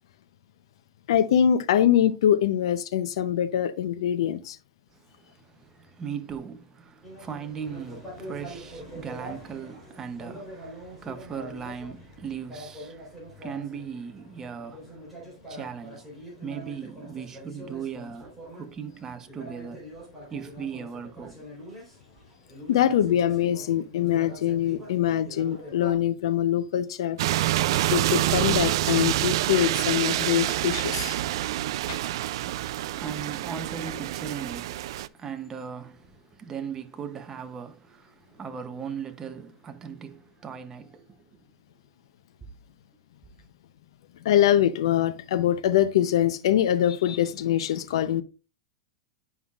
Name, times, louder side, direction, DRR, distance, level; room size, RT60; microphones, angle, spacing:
voice 1, 1.1-4.6 22.7-27.2 27.9-31.1 31.9-32.0 44.2-48.2, left 10 dB, 80° left, 0.6 m, -23 dB
voice 2, 5.2-15.0 15.5-16.0 16.4-19.8 20.3-21.4 31.8-41.4, right 7 dB, 20° right, 0.7 m, -38 dB
sound 1, 7.0-25.9, equal, ahead, 3.6 m, -44 dB
sound 2, 27.2-35.1, right 14 dB, 70° right, 0.3 m, -27 dB
9.4 x 5.5 x 2.4 m
supercardioid pair, 155°, 3 cm